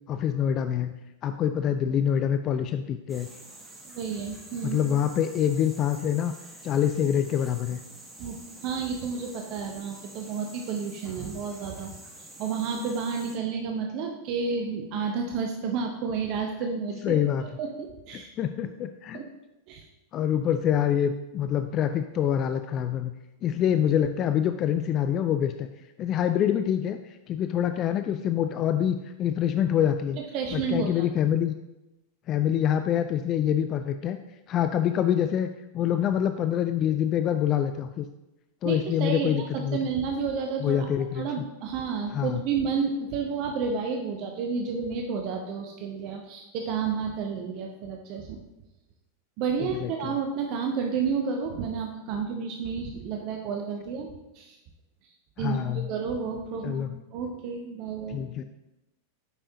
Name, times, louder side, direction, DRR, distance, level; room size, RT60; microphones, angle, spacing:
voice 1, 0.1-3.3 4.6-6.3 6.6-7.8 17.0-17.4 18.1-19.2 20.1-23.1 23.4-25.7 26.0-30.2 30.5-31.5 32.3-34.2 34.5-35.5 35.7-38.1 38.6-39.8 40.6-41.3 42.1-42.4 49.6-50.1 55.4-55.9 56.6-57.0 58.1-58.4, left 9 dB, 35° left, 9 dB, 0.3 m, -26 dB
sound 1, 3.1-13.4, right 1 dB, 10° right, 1.2 m, -47 dB
voice 2, 3.8-4.8 8.2-11.9 12.2-18.3 19.1-19.3 19.7-19.8 30.3-31.0 38.6-40.9 41.1-48.4 49.4-54.6 55.0-55.1 55.4-56.8 57.1-58.2, right 5 dB, 40° right, 3 dB, 0.7 m, -31 dB
8.2 x 5.4 x 2.7 m, 0.96 s
figure-of-eight pair, 90°, 0 cm